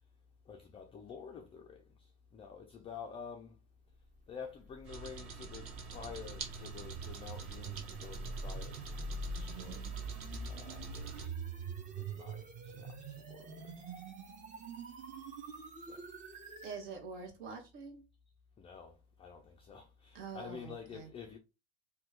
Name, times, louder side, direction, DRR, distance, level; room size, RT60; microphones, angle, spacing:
voice 1, 0.5-3.6 4.3-8.8 9.2-9.9 10.5-11.3 12.0-13.7 15.9-16.0 18.6-21.4, left 6 dB, 15° left, 0.3 m, -49 dB
sound 1, 4.7-16.8, right 3 dB, 25° right, 0.7 m, -44 dB
sound 2, 4.8-11.3, right 5 dB, 40° right, 1.0 m, -46 dB
voice 2, 16.6-18.0 20.1-21.1, right 5 dB, 65° right, 1.4 m, -45 dB
2.9 x 2.3 x 3.6 m
supercardioid pair, 115°, 33 cm